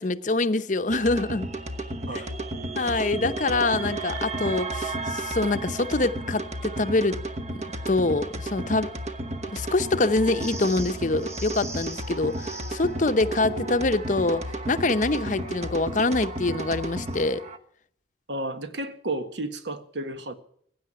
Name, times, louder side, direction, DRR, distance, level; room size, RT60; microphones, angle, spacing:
voice 1, 0.0-1.5 2.7-7.2 7.5-8.9 9.5-17.4, left 2 dB, 40° left, 0.7 m, -25 dB
sound 1, 0.9-17.6, right 1 dB, 35° right, 1.0 m, -33 dB
sound 2, 10.4-12.9 17.0-17.2, right 3 dB, 15° right, 0.8 m, -41 dB
voice 2, 18.3-20.3, right 2 dB, 70° right, 1.5 m, -32 dB
16.0 x 9.3 x 9.6 m
head